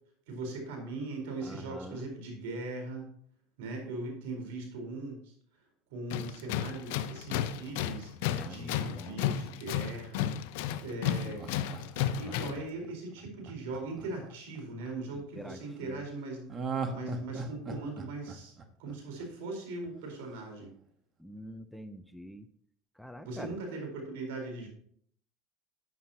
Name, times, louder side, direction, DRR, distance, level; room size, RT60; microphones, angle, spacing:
voice 1, 0.3-3.1 3.6-5.3 5.9-10.3 10.8-11.7 12.1-16.5 16.9-18.5 18.8-20.7 23.2-24.7, right 2 dB, 80° right, 2 dB, 4.4 m, -40 dB
voice 2, 1.4-2.1 8.2-9.3 15.4-16.1 21.2-22.5 23.0-23.6, equal, ahead, 10 dB, 0.6 m, -45 dB
Tools, 6.1-12.7, left 11 dB, 75° left, 0.7 m, -33 dB
Laughter, 10.7-14.9 16.5-19.5 19.8-19.9, right 4 dB, 30° right, 1.3 m, -39 dB
13.0 x 9.4 x 2.9 m, 0.62 s
supercardioid pair, 115°, 0 cm